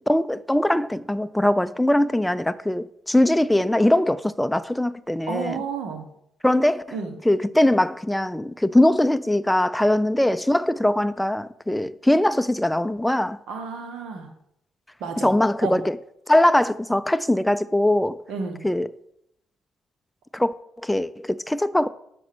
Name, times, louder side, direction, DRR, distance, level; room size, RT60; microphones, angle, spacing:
voice 1, 0.1-5.6 6.4-7.0 7.3-13.4 15.2-16.0 16.3-18.2 18.6-18.9 20.3-20.5 20.8-21.9, left 1 dB, 5° left, 0.4 m, -21 dB
voice 2, 5.3-6.0 6.9-7.1 13.5-14.3 15.0-15.3 15.6-15.8 18.3-18.6, right 5 dB, 80° right, 1.4 m, -31 dB
6.2 x 5.3 x 6.0 m
cardioid pair, 90°, 0 cm